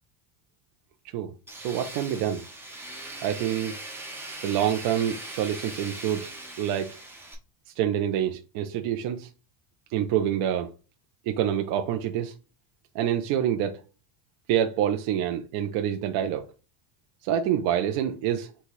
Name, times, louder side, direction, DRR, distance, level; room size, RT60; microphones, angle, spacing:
voice 1, 1.1-2.4 3.2-3.7 4.4-6.3 6.6-7.0 7.8-9.3 9.9-10.7 11.3-12.3 12.9-13.8 14.5-16.5 17.2-18.5, right 10 dB, 50° right, 0.6 m, -27 dB
Tools, 1.5-7.3, right 2 dB, 5° right, 0.7 m, -40 dB
4.1 x 2.3 x 4.6 m
cardioid pair, 135°, 48 cm